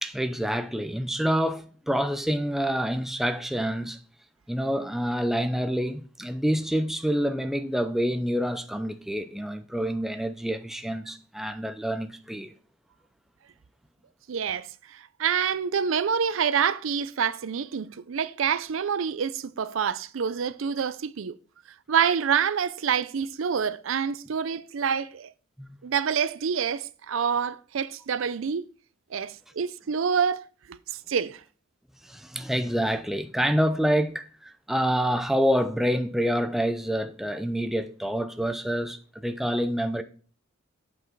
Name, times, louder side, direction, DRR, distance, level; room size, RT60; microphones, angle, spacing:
voice 1, 0.0-4.0 4.5-12.5 25.6-25.8 32.0-40.0, equal, ahead, 0.5 m, -27 dB
voice 2, 14.3-21.4 21.9-25.3 25.8-28.6 29.1-31.4, right 7 dB, 75° right, 0.5 m, -27 dB
8.1 x 6.1 x 4.5 m
head